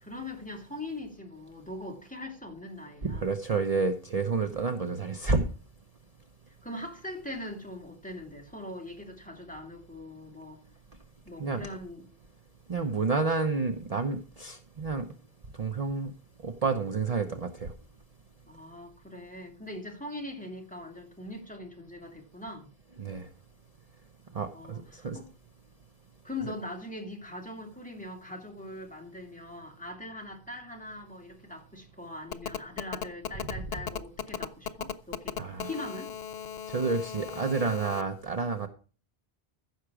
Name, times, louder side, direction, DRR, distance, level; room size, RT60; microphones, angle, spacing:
voice 1, 0.0-3.3 6.6-10.6 11.2-12.1 12.7-13.0 18.5-22.7 24.5-25.3 26.2-36.2, left 1 dB, 5° left, 2.6 m, -41 dB
voice 2, 3.0-5.5 11.4-11.7 12.7-15.1 15.6-16.1 16.4-17.7 23.0-23.3 24.3-25.2 35.4-35.7 36.7-38.7, right 4 dB, 40° right, 0.9 m, -29 dB
Telephone, 32.3-38.0, left 8 dB, 75° left, 1.0 m, -36 dB
15.0 x 6.6 x 4.9 m
omnidirectional pair, 1.0 m